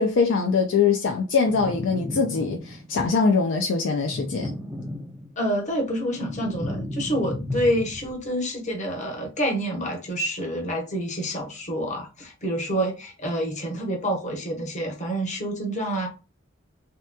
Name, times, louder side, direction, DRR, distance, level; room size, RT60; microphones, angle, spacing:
voice 1, 0.0-4.5, left 5 dB, 60° left, 0.4 m, -22 dB
sound 1, 1.5-3.0 4.0-5.5 5.9-8.3, left 1 dB, 5° right, 0.5 m, -34 dB
voice 2, 5.4-16.1, equal, 35° left, 0.9 m, -27 dB
3.2 x 2.8 x 2.2 m
head